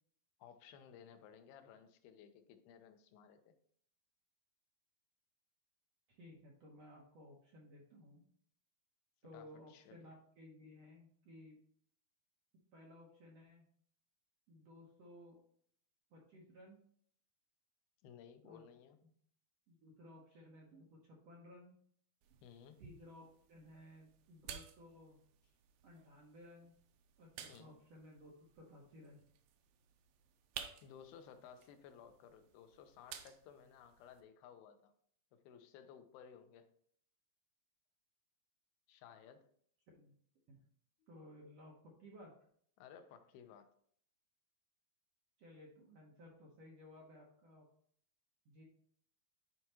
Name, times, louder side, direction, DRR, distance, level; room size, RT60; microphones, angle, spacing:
voice 1, 0.4-3.6 9.3-10.1 18.0-19.0 22.4-22.8 27.5-27.8 30.8-34.9 35.3-36.7 38.9-39.5 41.0-41.1 42.8-43.7, left 8 dB, 90° left, 8 dB, 2.6 m, -58 dB
voice 2, 6.1-8.2 9.2-11.6 12.7-13.6 14.5-15.4 16.1-16.8 18.4-18.6 19.7-21.8 22.8-25.2 25.8-26.7 27.2-29.2 39.9-40.1 40.5-40.6 41.1-42.3 45.4-47.7 48.4-48.6, left 1 dB, 65° right, -2 dB, 1.7 m, -58 dB
sound 1, 22.2-34.2, right 8 dB, 85° right, 2.5 m, -55 dB
11.0 x 4.6 x 2.9 m, 0.63 s
omnidirectional pair, 4.3 m